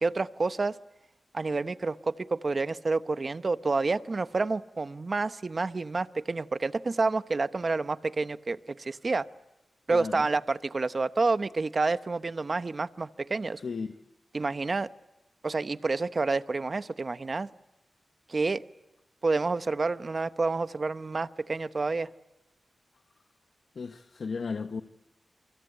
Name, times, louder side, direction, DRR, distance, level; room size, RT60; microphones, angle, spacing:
voice 1, 0.0-0.7 1.3-9.2 9.9-13.6 14.3-14.9 15.4-17.5 18.3-18.6 19.2-22.1, right 3 dB, 45° right, 12 dB, 1.0 m, -29 dB
voice 2, 9.9-10.3 13.6-13.9 23.7-24.8, left 5 dB, 70° left, 8 dB, 1.2 m, -35 dB
28.0 x 24.5 x 8.5 m, 0.94 s
cardioid pair, 60°, 0 cm